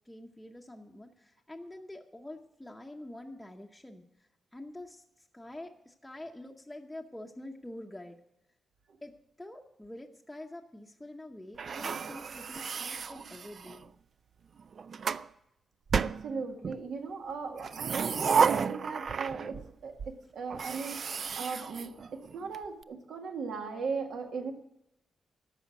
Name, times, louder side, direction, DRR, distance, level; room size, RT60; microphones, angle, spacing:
voice 1, 0.0-4.0 4.5-8.2 9.0-13.9, left 1 dB, 5° left, 0 dB, 0.8 m, -46 dB
sound 1, 11.6-13.9 14.6-15.3 15.9-16.8 17.5-19.7 20.0-20.1 20.5-22.6, right 6 dB, 50° right, 0.3 m, -32 dB
voice 2, 15.9-24.5, right 5 dB, 80° right, 3 dB, 1.9 m, -38 dB
13.5 x 5.7 x 9.1 m, 0.81 s
wide cardioid pair, 150°, 0 cm